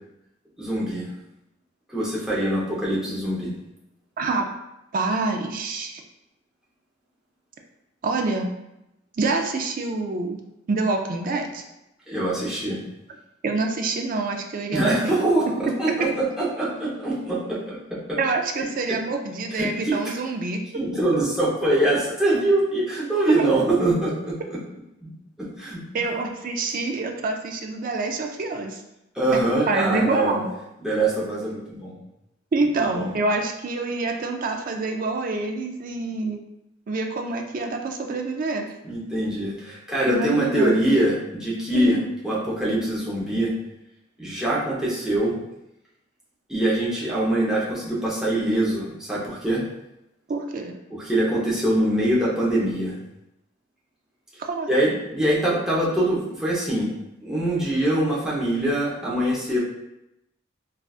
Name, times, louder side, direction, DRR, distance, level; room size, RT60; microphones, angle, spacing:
voice 1, 0.6-1.1 1.9-3.5 12.1-12.8 14.7-17.8 18.1-18.2 19.5-19.7 19.9-20.0 20.7-24.6 25.0-25.1 25.4-25.8 29.1-30.4 30.8-31.9 32.8-33.2 38.8-42.0 42.2-43.5 44.2-45.4 46.5-49.6 50.9-53.0 54.7-56.9 57.2-59.6, right 1 dB, 5° right, -7 dB, 0.7 m, -23 dB
voice 2, 4.2-4.5 4.9-6.0 8.0-8.5 9.2-10.4 10.7-11.6 13.4-15.2 18.2-20.6 25.9-28.8 29.7-30.5 32.5-36.4 36.9-38.7 40.1-40.7 41.7-42.1 50.3-50.8 54.4-55.0, right 3 dB, 45° right, 3 dB, 0.3 m, -26 dB
3.7 x 2.3 x 2.3 m, 0.89 s
head